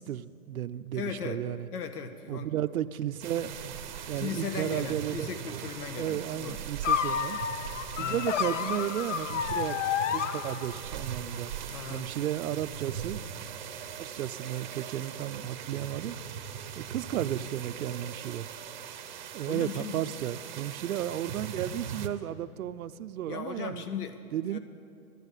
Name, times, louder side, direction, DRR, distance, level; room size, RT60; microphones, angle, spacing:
voice 1, 0.0-1.7 2.3-3.5 4.1-5.6 6.0-7.4 8.0-11.5 11.9-13.2 14.0-16.2 16.8-18.5 19.3-23.8 24.3-24.6, right 11 dB, 70° right, 12 dB, 0.6 m, -33 dB
voice 2, 0.9-1.4 1.7-2.5 4.2-6.6 8.0-8.3 11.7-12.1 19.5-19.9 23.3-24.2 24.5-24.6, left 6 dB, 90° left, 9 dB, 1.2 m, -37 dB
sound 1, 3.2-22.1, right 8 dB, 30° right, 0.7 m, -40 dB
sound 2, 6.8-11.0, left 8 dB, 55° left, 0.6 m, -30 dB
13.5 x 11.0 x 8.2 m, 2.7 s
hypercardioid pair, 170°, 45 cm